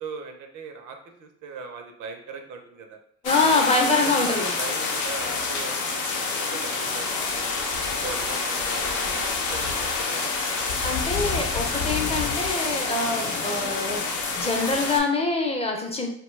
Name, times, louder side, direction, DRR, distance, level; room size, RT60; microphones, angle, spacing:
voice 1, 0.0-3.0 4.0-6.0 6.3-7.5 7.8-10.3, right 4 dB, 80° right, 4 dB, 0.6 m, -39 dB
sound 1, 3.2-15.0, left 4 dB, 80° left, 0.6 m, -27 dB
voice 2, 3.2-4.6 10.6-14.0 14.3-16.1, left 3 dB, 20° left, 2 dB, 0.5 m, -25 dB
2.7 x 2.2 x 3.1 m, 0.67 s
cardioid pair, 90°, 30 cm